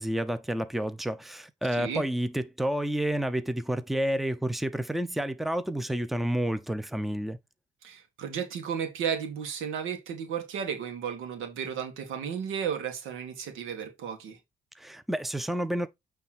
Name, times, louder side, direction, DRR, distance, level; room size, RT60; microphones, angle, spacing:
voice 1, 0.0-7.4 14.8-15.9, right 1 dB, ahead, 0.8 m, -30 dB
voice 2, 1.7-2.0 7.8-14.4, right 7 dB, 90° right, 1.9 m, -34 dB
8.9 x 3.6 x 4.3 m
cardioid pair, 90°, 20 cm